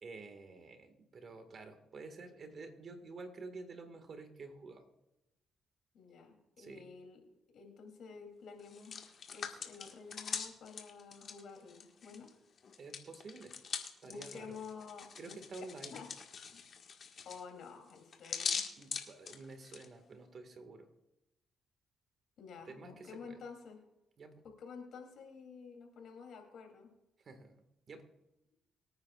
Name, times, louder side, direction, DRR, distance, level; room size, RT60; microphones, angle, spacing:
voice 1, 0.0-4.9 6.6-6.9 12.8-13.6 14.0-14.6 15.2-16.0 18.8-20.9 22.6-23.4 24.2-24.4 27.2-28.1, right 3 dB, 50° right, 7 dB, 1.8 m, -50 dB
voice 2, 5.9-7.2 7.5-9.0 9.3-12.3 14.0-15.4 15.9-16.1 16.5-16.6 17.2-18.6 22.4-23.8 24.4-26.9, left 5 dB, 70° left, 3 dB, 3.1 m, -50 dB
Hands, 8.6-12.3 12.6-19.9, left 6 dB, 55° left, 1.7 m, -42 dB
24.0 x 9.5 x 2.5 m, 0.91 s
cardioid pair, 90°, 0 cm